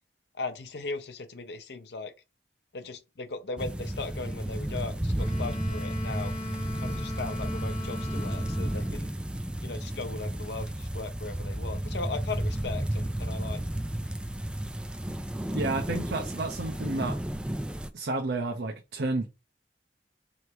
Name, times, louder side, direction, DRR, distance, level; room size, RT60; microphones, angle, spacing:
voice 1, 0.4-2.1 2.7-6.3 6.8-9.1 9.6-13.6, left 3 dB, 75° left, 0.7 m, -38 dB
sound 1, 3.6-17.9, right 1 dB, 5° right, 0.3 m, -32 dB
Wind instrument woodwind instrument, 5.1-9.1, left 1 dB, 40° left, 1.6 m, -39 dB
voice 2, 15.5-17.2 17.9-19.3, right 2 dB, 75° right, 0.6 m, -31 dB
3.3 x 3.2 x 4.6 m
head